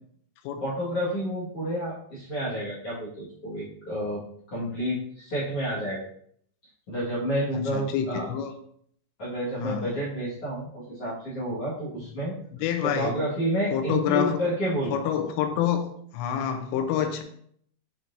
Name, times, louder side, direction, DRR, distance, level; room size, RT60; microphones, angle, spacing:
voice 1, 0.6-4.2 4.5-6.0 6.9-8.3 9.2-12.3 12.8-14.9, equal, 55° left, -7 dB, 1.6 m, -30 dB
voice 2, 7.5-8.5 9.6-10.0 12.6-13.2 13.7-14.4 14.9-15.9 16.1-17.2, left 9 dB, 90° left, 6 dB, 3.3 m, -27 dB
7.6 x 5.8 x 2.7 m, 0.65 s
omnidirectional pair, 5.7 m